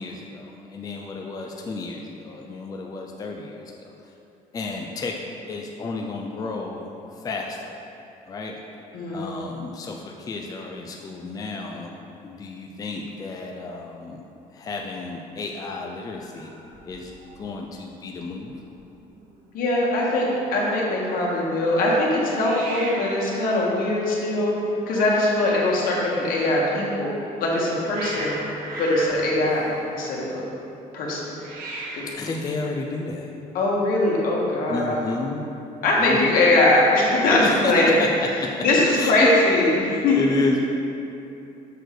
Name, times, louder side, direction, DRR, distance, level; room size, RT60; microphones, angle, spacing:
voice 1, 0.0-3.9 4.5-5.2 5.5-7.8 8.3-8.6 9.1-12.0 12.2-14.2 14.5-16.5 16.8-18.5 32.1-33.3 34.7-35.5 36.0-36.4 37.4-38.5 38.9-39.3 39.9-40.6, left 3 dB, 25° left, 0 dB, 0.5 m, -32 dB
voice 2, 8.9-9.4 19.5-24.5 24.9-27.1 27.4-28.3 28.8-30.5 30.9-31.3 31.9-32.0 33.5-35.0 35.8-38.0 38.6-40.2, left 2 dB, 75° left, -4 dB, 1.8 m, -21 dB
Hiss, 16.2-17.4 17.7-18.1 18.4-18.5 18.7-19.4 22.4-26.7 27.4-30.4 31.3-32.3, right 2 dB, 75° right, 1.5 m, -38 dB
6.7 x 6.0 x 4.8 m, 2.8 s
cardioid pair, 150°, 15 cm